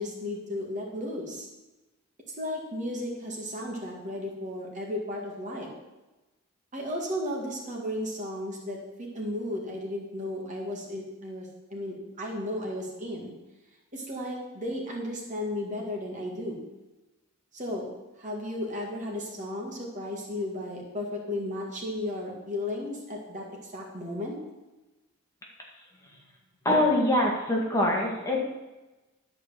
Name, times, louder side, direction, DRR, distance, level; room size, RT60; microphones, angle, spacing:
voice 1, 0.0-1.5 2.4-5.7 6.7-13.3 13.9-16.7 17.5-17.9 18.2-24.4, left 1 dB, 35° right, 0 dB, 2.0 m, -34 dB
voice 2, 26.7-28.4, left 1 dB, 15° left, -3 dB, 1.8 m, -24 dB
11.5 x 5.0 x 7.6 m, 1.1 s
head